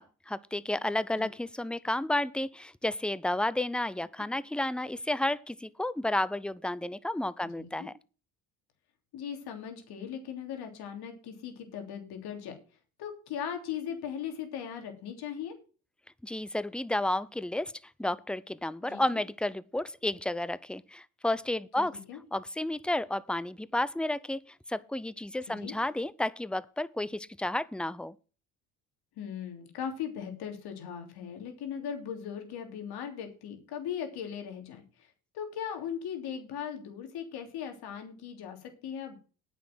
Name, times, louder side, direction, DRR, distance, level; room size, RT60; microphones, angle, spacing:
voice 1, 0.0-7.9 16.2-17.7 18.0-22.0 22.3-28.1, left 1 dB, ahead, 0.5 m, -32 dB
voice 2, 7.6-7.9 9.1-12.6 13.0-15.5 18.8-19.2 22.1-22.2 25.5-25.7 29.2-35.1 35.3-39.2, left 8 dB, 65° left, 3.1 m, -38 dB
9.4 x 6.4 x 7.6 m
hypercardioid pair, 65°, 41 cm